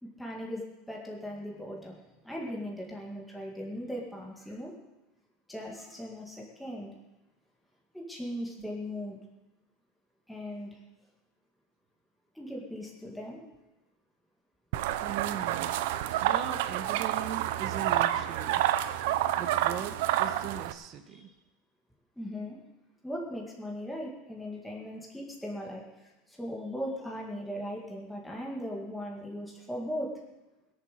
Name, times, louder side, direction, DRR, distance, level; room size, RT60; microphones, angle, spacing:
voice 1, 0.0-2.0 2.2-4.7 5.5-6.9 7.9-9.2 10.3-10.8 12.4-13.4 21.1-21.3 22.2-22.6 23.0-25.8 26.3-30.1, equal, ahead, -3 dB, 2.0 m, -38 dB
sound 1, 14.7-20.7, right 13 dB, 65° right, 0.8 m, -29 dB
voice 2, 15.0-15.8 16.2-18.6 19.4-21.3, right 9 dB, 35° right, 8 dB, 1.2 m, -39 dB
21.0 x 7.3 x 6.6 m, 1.0 s
supercardioid pair, 170°, 0 cm